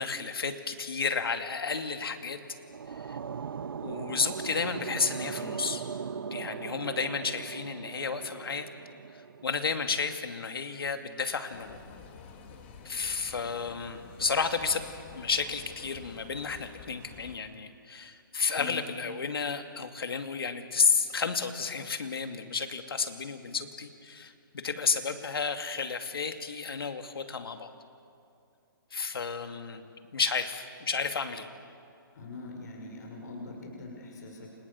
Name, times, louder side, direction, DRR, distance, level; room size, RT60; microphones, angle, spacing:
voice 1, 0.0-2.4 3.0-3.2 3.8-5.8 6.3-8.7 9.1-11.8 12.8-27.7 28.9-29.8 30.1-31.5, left 5 dB, 85° left, 7 dB, 2.5 m, -32 dB
sound 1, 2.4-9.5, right 6 dB, 70° right, 1.0 m, -39 dB
sound 2, 11.5-17.4, left 6 dB, 30° left, 2.3 m, -49 dB
voice 2, 32.1-34.5, left 3 dB, 50° left, 0 dB, 6.6 m, -42 dB
29.5 x 27.5 x 7.2 m, 2.5 s
hypercardioid pair, 165°, 12 cm